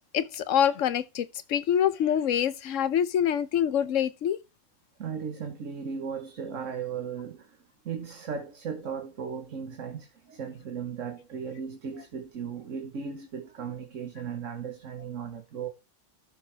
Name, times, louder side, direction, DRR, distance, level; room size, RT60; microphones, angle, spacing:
voice 1, 0.1-4.4, left 9 dB, 85° left, 1.1 m, -25 dB
voice 2, 5.0-7.6 7.8-15.7, right 6 dB, 80° right, 1.5 m, -36 dB
12.5 x 6.9 x 3.3 m
omnidirectional pair, 1.3 m